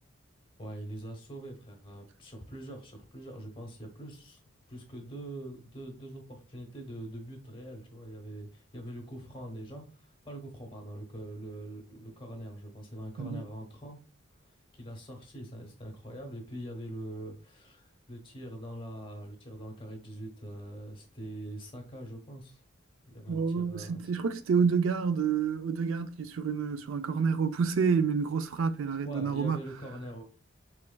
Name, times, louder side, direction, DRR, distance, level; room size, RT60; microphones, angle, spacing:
voice 1, 0.6-4.4 4.7-14.1 14.8-22.6 23.1-24.1 29.0-30.2, right 1 dB, 25° left, 1.0 m, -43 dB
voice 2, 23.3-29.6, right 5 dB, 75° right, 0.4 m, -28 dB
4.5 x 3.1 x 2.2 m
head